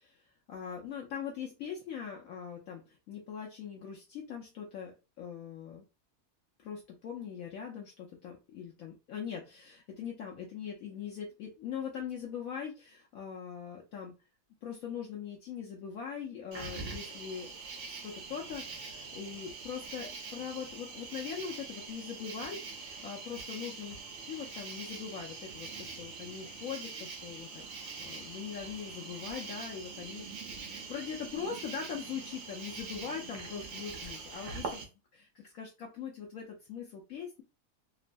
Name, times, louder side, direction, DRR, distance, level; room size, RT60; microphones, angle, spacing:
voice 1, 0.0-4.9 5.2-5.8 6.6-14.1 14.6-17.5 17.9-23.9 24.3-27.6 28.0-30.3 30.5-37.4, left 7 dB, 70° left, -1 dB, 0.9 m, -41 dB
Cricket, 16.5-34.8, right 4 dB, 60° right, 0.9 m, -43 dB
3.0 x 2.1 x 2.5 m, 0.29 s
omnidirectional pair, 1.7 m